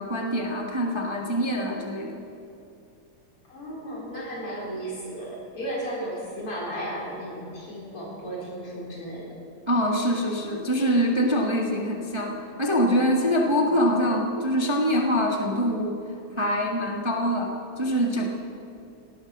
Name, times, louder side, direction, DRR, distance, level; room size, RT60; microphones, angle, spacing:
voice 1, 0.0-2.2 9.7-16.0 16.4-18.2, equal, 15° right, 0 dB, 1.0 m, -24 dB
voice 2, 3.5-9.4 13.5-13.6, right 1 dB, 80° left, -5 dB, 5.2 m, -34 dB
17.5 x 12.5 x 6.0 m, 2.7 s
omnidirectional pair, 2.4 m